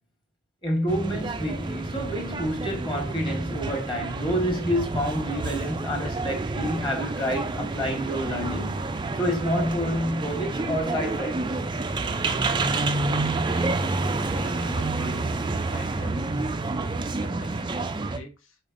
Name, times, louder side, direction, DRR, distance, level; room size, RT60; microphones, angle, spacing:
voice 1, 0.6-8.9 9.1-11.7, equal, 20° left, 1.4 m, -28 dB
sound 1, 0.9-18.2, right 3 dB, 20° right, 0.3 m, -29 dB
voice 2, 14.3-15.3 15.6-16.5 17.2-18.6, left 2 dB, 70° left, 1.2 m, -43 dB
5.0 x 4.2 x 2.5 m
head